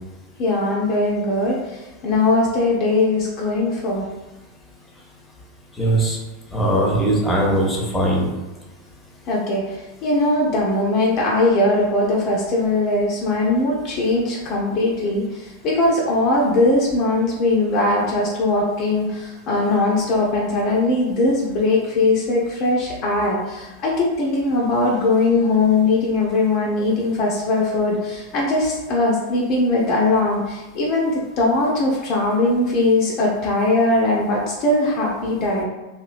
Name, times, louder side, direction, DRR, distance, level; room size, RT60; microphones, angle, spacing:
voice 1, 0.4-4.1 9.3-35.6, left 2 dB, 35° left, -3 dB, 0.5 m, -20 dB
voice 2, 5.8-6.2 6.5-8.3, right 1 dB, 10° left, -2 dB, 0.8 m, -19 dB
3.0 x 2.6 x 2.5 m, 1.1 s
figure-of-eight pair, 90°, 0 cm